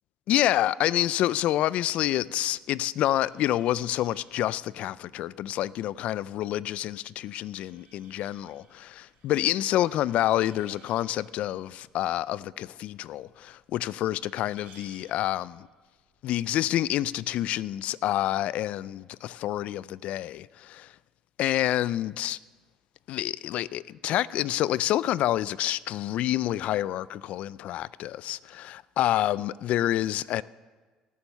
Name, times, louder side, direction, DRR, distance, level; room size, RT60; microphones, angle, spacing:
voice 1, 0.3-15.7 16.2-20.9 21.4-22.4 23.1-30.4, left 13 dB, 70° left, 0.3 m, -28 dB
sound 1, 3.0-17.9, right 5 dB, 70° right, 4.1 m, -61 dB
17.0 x 7.2 x 6.8 m
supercardioid pair, 80°, 2 cm